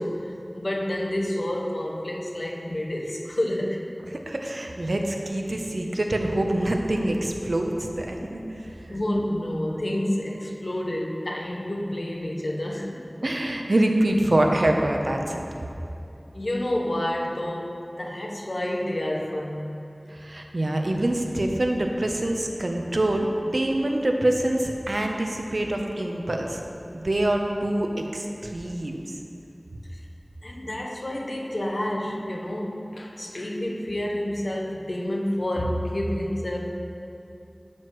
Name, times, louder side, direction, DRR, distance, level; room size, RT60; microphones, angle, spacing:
voice 1, 0.0-3.8 8.9-13.1 16.3-19.8 29.9-30.0 30.4-36.8, left 1 dB, 70° left, -1 dB, 1.0 m, -29 dB
voice 2, 4.3-9.0 13.2-15.4 20.1-23.3 23.5-26.6 26.9-29.0, right 1 dB, 75° right, 2 dB, 0.8 m, -25 dB
11.5 x 7.8 x 3.2 m, 2.7 s
wide cardioid pair, 40°, 0 cm